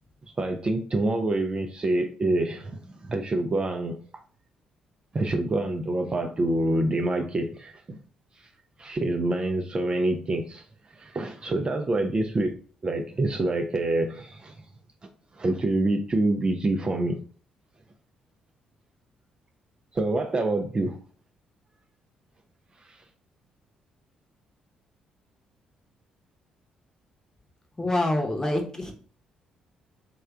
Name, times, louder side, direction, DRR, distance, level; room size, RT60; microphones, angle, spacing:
voice 1, 0.4-4.0 5.1-8.0 8.8-10.6 11.0-12.6 12.8-14.6 15.4-17.2 19.9-21.0 22.9-23.0, right 2 dB, 30° right, 0.4 m, -26 dB
voice 2, 27.8-28.9, left 1 dB, 20° left, 0.9 m, -26 dB
3.2 x 2.3 x 3.6 m
figure-of-eight pair, 45°, 3 cm